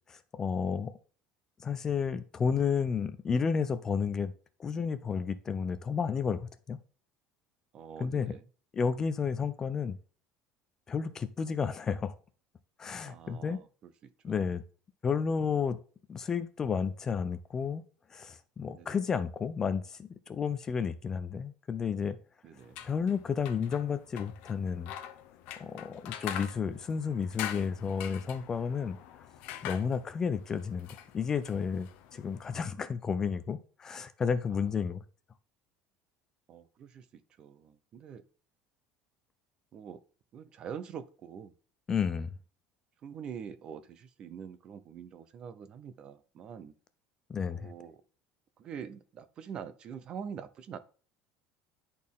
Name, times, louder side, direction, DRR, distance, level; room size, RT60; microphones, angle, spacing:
voice 1, 0.1-0.9 1.6-4.3 4.6-6.8 8.0-8.3 8.7-10.0 10.9-12.1 12.8-13.6 14.2-14.6 15.0-15.8 16.1-17.8 18.1-22.2 22.8-24.9 25.6-29.0 29.6-35.0 41.9-42.3 47.3-47.7, left 6 dB, 20° left, 0.4 m, -32 dB
voice 2, 7.7-8.4 13.0-14.4 18.7-19.0 22.4-22.9 34.5-34.7 36.5-38.2 39.7-40.0 40.3-41.5 42.0-42.2 43.0-46.7 47.5-48.0 48.6-50.8, right 7 dB, 30° right, 0.5 m, -45 dB
sound 1, 22.6-32.6, left 10 dB, 55° left, 0.7 m, -44 dB
10.5 x 4.2 x 3.6 m
cardioid pair, 170°, 3 cm